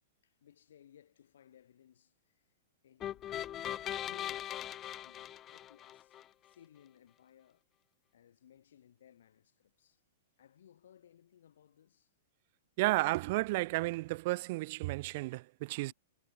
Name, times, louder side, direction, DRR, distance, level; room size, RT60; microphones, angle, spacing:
voice 1, 0.2-2.5 2.8-3.5 4.0-7.6 8.1-10.0 10.4-12.1 15.8-15.9, left 10 dB, 75° left, 7.8 m, -62 dB
sound 1, 3.0-6.2, left 12 dB, 25° left, 0.4 m, -40 dB
voice 2, 12.8-15.9, right 21 dB, 50° right, 0.4 m, -32 dB
hypercardioid pair, 130°, 0 cm